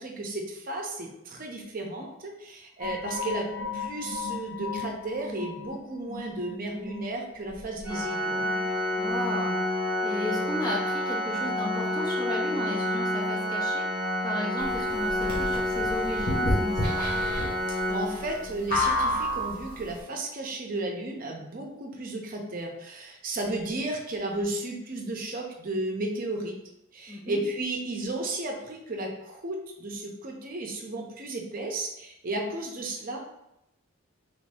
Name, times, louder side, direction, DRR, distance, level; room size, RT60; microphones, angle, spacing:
voice 1, 0.0-8.4 17.7-26.6 26.9-33.2, right 2 dB, 40° right, 1 dB, 0.6 m, -34 dB
sound 1, 2.8-9.1 9.4-9.5, left 5 dB, 85° left, 0.5 m, -38 dB
Organ, 7.8-18.7, left 1 dB, 10° right, 1.3 m, -29 dB
voice 2, 9.0-9.6 10.0-13.9 14.2-17.1 27.1-27.4, left 1 dB, 20° left, -2 dB, 0.5 m, -34 dB
sound 2, 14.6-19.9, left 1 dB, 45° left, 1.0 m, -29 dB
3.0 x 2.7 x 3.3 m, 0.84 s
head